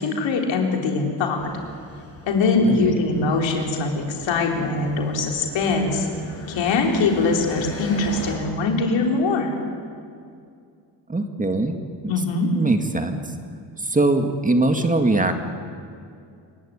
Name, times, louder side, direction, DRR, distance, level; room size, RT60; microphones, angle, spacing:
voice 1, 0.0-1.5 2.3-6.1 6.5-9.5 12.1-12.5, left 3 dB, 80° left, 2 dB, 4.1 m, -22 dB
sound 1, 1.4-8.4, left 2 dB, 30° left, 5.3 m, -40 dB
voice 2, 11.1-11.8 12.0-12.1 12.6-13.2 13.8-15.3, right 2 dB, 15° right, 6 dB, 2.0 m, -21 dB
26.5 x 16.0 x 10.0 m, 2.4 s
cardioid pair, 100°, 44 cm